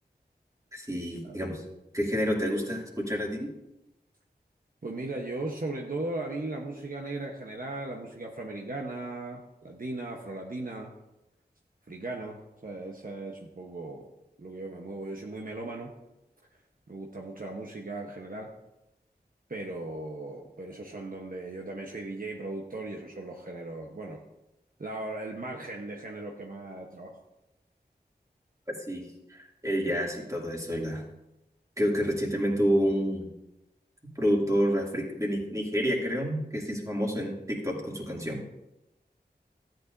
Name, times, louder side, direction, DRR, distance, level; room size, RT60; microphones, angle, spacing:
voice 1, 0.7-1.6 1.9-3.5 28.7-29.0 29.3-31.0 31.8-33.3 34.2-38.4, equal, 20° right, -2 dB, 2.5 m, -28 dB
voice 2, 4.8-10.9 11.9-14.1 14.4-15.9 16.9-18.5 19.5-24.2 24.8-27.2, right 2 dB, 55° right, 0 dB, 1.0 m, -37 dB
13.5 x 8.9 x 2.6 m, 0.92 s
wide cardioid pair, 45°, 17 cm